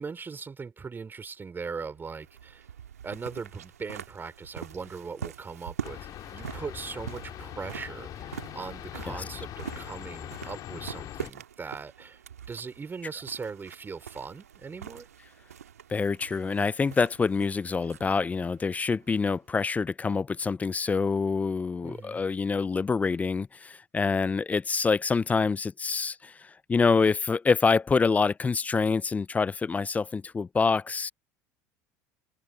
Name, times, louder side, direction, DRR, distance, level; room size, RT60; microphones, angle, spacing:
voice 1, 0.0-2.7 3.0-15.1 21.8-22.2, right 5 dB, 25° right, 3.7 m, -39 dB
sound 1, 1.9-19.6, right 8 dB, 85° right, 1.7 m, -44 dB
sound 2, 5.8-11.3, left 12 dB, 50° left, 2.3 m, -41 dB
voice 2, 15.9-31.1, left 4 dB, 20° left, 0.3 m, -26 dB
open air
hypercardioid pair, 70°, 8 cm